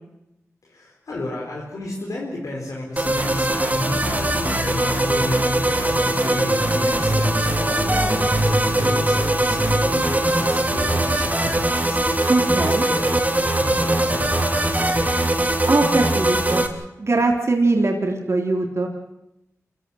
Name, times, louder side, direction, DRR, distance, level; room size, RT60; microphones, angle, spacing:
voice 1, 0.6-15.4, left 2 dB, 90° left, -3 dB, 4.5 m, -33 dB
sound 1, 3.0-16.7, right 1 dB, 30° right, 3.1 m, -21 dB
voice 2, 12.3-12.8 15.7-16.7 17.0-18.9, right 2 dB, 55° right, 1 dB, 3.4 m, -21 dB
27.5 x 15.5 x 7.9 m, 0.87 s
cardioid pair, 55°, 6 cm